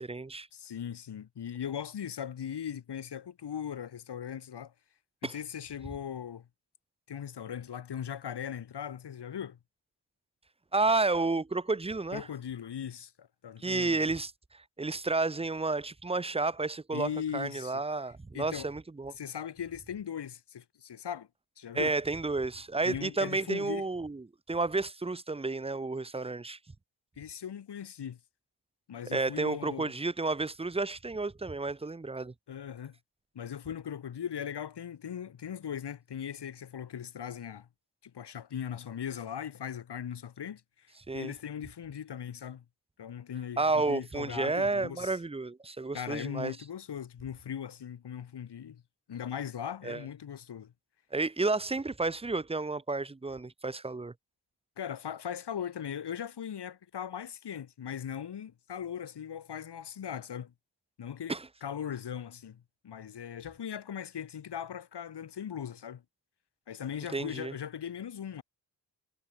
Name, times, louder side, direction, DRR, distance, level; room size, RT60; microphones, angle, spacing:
voice 1, 0.0-0.5 5.2-5.3 10.7-12.3 13.6-14.3 14.8-19.2 21.7-26.6 29.1-32.3 41.1-41.3 43.6-46.6 49.8-50.0 51.1-54.1 61.3-61.4 67.1-67.5, right 3 dB, 15° right, 0.7 m, -31 dB
voice 2, 0.5-4.7 5.2-6.5 7.1-9.6 12.1-14.1 16.9-17.8 18.3-18.7 19.2-21.3 21.6-21.9 22.8-23.9 27.2-28.2 28.9-29.9 32.5-33.0 33.4-37.7 38.0-42.6 43.0-45.2 45.9-48.8 49.1-50.7 54.8-60.5 61.0-61.4 61.6-66.0 66.7-68.4, left 8 dB, 65° left, 1.8 m, -39 dB
wide cardioid pair, 100°, 43 cm